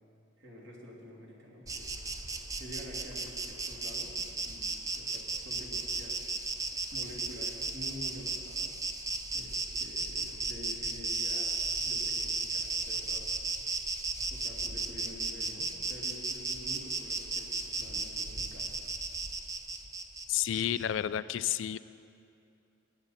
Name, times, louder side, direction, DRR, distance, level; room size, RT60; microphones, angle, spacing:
voice 1, 0.4-2.0 2.4-6.2 6.9-8.8 9.3-13.2 14.3-18.8, left 1 dB, 65° right, -3 dB, 2.6 m, -48 dB
Insect, 1.7-20.8, right 3 dB, 15° right, 0.5 m, -35 dB
voice 2, 20.3-21.8, left 11 dB, 65° left, 15 dB, 0.3 m, -31 dB
19.5 x 8.8 x 4.2 m, 2.6 s
head